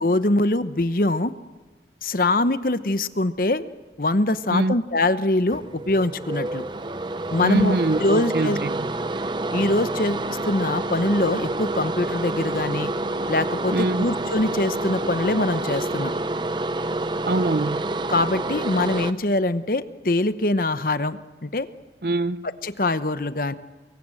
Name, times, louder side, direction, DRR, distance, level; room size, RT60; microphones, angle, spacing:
voice 1, 0.0-1.3 2.0-3.6 4.0-6.6 7.3-8.6 9.5-12.9 13.3-16.1 18.1-21.7 22.4-23.5, left 2 dB, 50° left, 0.9 m, -23 dB
voice 2, 4.5-4.8 7.4-8.9 13.7-14.1 17.3-17.8 22.0-22.5, right 2 dB, 60° right, 0.7 m, -24 dB
sound 1, 5.5-19.1, right 2 dB, 25° right, 0.7 m, -28 dB
25.0 x 22.0 x 7.8 m
head